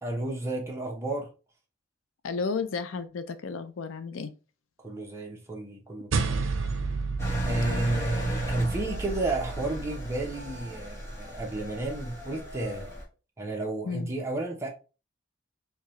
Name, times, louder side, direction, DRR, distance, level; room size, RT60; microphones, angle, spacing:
voice 1, 0.0-1.3 4.8-6.5 7.4-12.9 13.4-14.7, right 2 dB, 15° right, 0.8 m, -32 dB
voice 2, 2.2-4.3 7.4-8.1 13.8-14.1, left 5 dB, 85° left, 0.5 m, -33 dB
sound 1, 6.1-10.7, right 4 dB, 80° right, 0.5 m, -32 dB
Engine, 7.2-13.0, right 1 dB, 15° left, 1.0 m, -34 dB
4.6 x 2.3 x 3.1 m
head